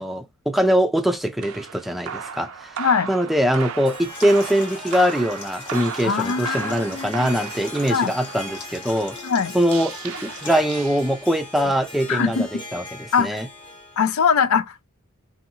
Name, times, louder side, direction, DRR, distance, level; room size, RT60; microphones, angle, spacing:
voice 1, 0.0-2.8 3.1-9.2 9.5-13.5, equal, ahead, 0.4 m, -22 dB
sound 1, 1.4-11.6, right 7 dB, 70° right, 0.4 m, -36 dB
voice 2, 2.8-3.1 6.0-7.3 7.9-8.1 9.2-9.5 12.1-12.5 13.1-13.4 14.0-14.9, left 6 dB, 75° left, 0.5 m, -22 dB
Harp, 3.6-14.1, left 2 dB, 25° left, 1.0 m, -39 dB
sound 2, 4.1-10.9, left 4 dB, 50° left, 1.0 m, -42 dB
2.8 x 2.7 x 2.7 m
head